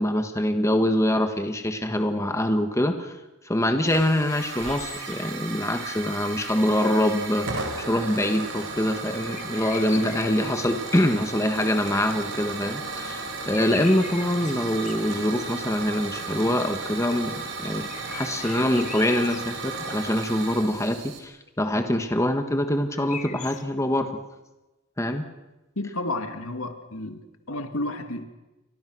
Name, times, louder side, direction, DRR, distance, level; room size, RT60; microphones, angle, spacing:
voice 1, 0.0-3.2 3.4-24.2 25.0-25.2, left 1 dB, 15° left, 6 dB, 1.5 m, -24 dB
Hiss / Fire, 3.9-21.2, right 3 dB, 65° right, 4.6 m, -35 dB
sound 1, 4.6-5.3 9.3-10.6 13.3-15.2 17.9-19.5 22.9-23.6, left 7 dB, 35° left, 1.4 m, -41 dB
voice 2, 25.8-28.3, left 2 dB, 80° left, 7 dB, 2.1 m, -31 dB
29.5 x 24.0 x 6.3 m, 1.1 s
head